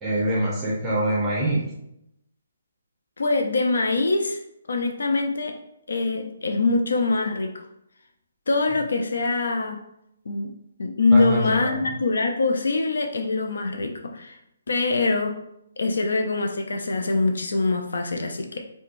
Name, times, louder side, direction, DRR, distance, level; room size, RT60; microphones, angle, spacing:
voice 1, 0.0-1.7 11.1-11.9, right 1 dB, 15° right, -6 dB, 0.7 m, -25 dB
voice 2, 3.2-4.4 4.7-5.6 5.9-7.5 8.5-9.8 10.3-10.5 10.8-14.4 14.7-15.4 15.8-18.6, left 3 dB, 75° left, 4 dB, 0.4 m, -23 dB
3.0 x 2.2 x 2.5 m, 0.80 s
hypercardioid pair, 155°, 0 cm